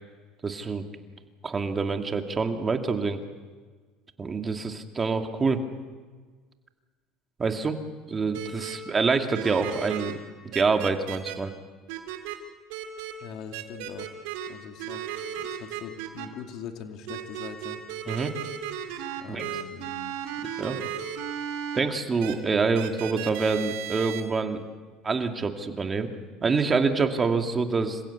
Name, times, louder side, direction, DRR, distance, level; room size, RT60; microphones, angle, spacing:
voice 1, 0.4-0.8 1.4-3.2 4.2-5.6 7.4-7.8 8.1-10.2 10.5-11.5 18.1-18.3 19.3-19.5 20.6-20.8 21.7-24.6 25.0-26.1 26.4-28.0, right 4 dB, 25° right, 5 dB, 2.3 m, -26 dB
sound 1, 8.3-8.8 9.3-10.1 10.5-11.3 11.9-12.4 12.7-13.1 13.5-14.5 14.8-16.3 17.1-21.8 22.2-22.3 22.7-24.2, right 10 dB, 80° right, 2.8 m, -35 dB
voice 2, 13.2-14.2 14.5-15.0 15.4-17.8 19.2-20.2 20.7-20.9, left 7 dB, 60° left, 5 dB, 2.5 m, -42 dB
27.5 x 16.0 x 8.2 m, 1.5 s
supercardioid pair, 95°, 0 cm